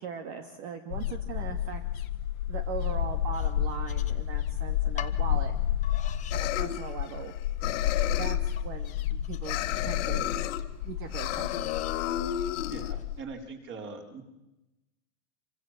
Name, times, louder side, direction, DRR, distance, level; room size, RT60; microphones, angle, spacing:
voice 1, 0.0-1.8 2.5-5.6 6.3-7.3 8.1-10.3 10.8-11.7, right 7 dB, 45° right, 6 dB, 2.7 m, -39 dB
sound 1, 0.9-13.2, left 11 dB, 75° left, 1.9 m, -31 dB
sound 2, 3.3-4.5 5.0-5.2 5.8-6.4 6.8-7.3 7.8-7.9 8.6-10.1 11.3-12.0 12.6-13.1, left 10 dB, 15° left, 1.3 m, -45 dB
sound 3, 6.3-7.3 7.6-8.5 9.4-10.6 11.1-12.9, left 12 dB, 60° left, 2.1 m, -32 dB
voice 2, 12.4-14.2, right 4 dB, 25° right, 3 dB, 4.8 m, -42 dB
27.0 x 25.5 x 7.7 m, 0.95 s
supercardioid pair, 145°, 42 cm